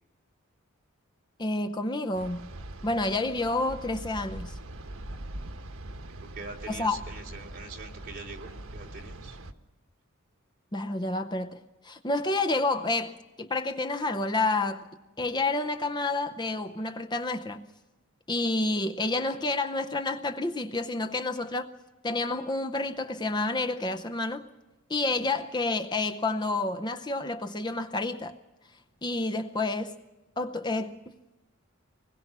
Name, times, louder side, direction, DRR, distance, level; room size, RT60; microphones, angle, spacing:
voice 1, 1.4-2.4 2.8-4.6 6.7-7.0 10.7-11.6 11.8-14.8 15.2-17.7 18.3-21.7 22.0-24.4 24.9-28.3 29.0-30.0 30.4-31.0, left 2 dB, 20° left, 0.6 m, -29 dB
sound 1, 2.1-9.5, right 1 dB, 80° right, 1.2 m, -42 dB
voice 2, 6.2-9.4, right 3 dB, 45° right, 3.5 m, -43 dB
25.0 x 21.0 x 6.0 m
head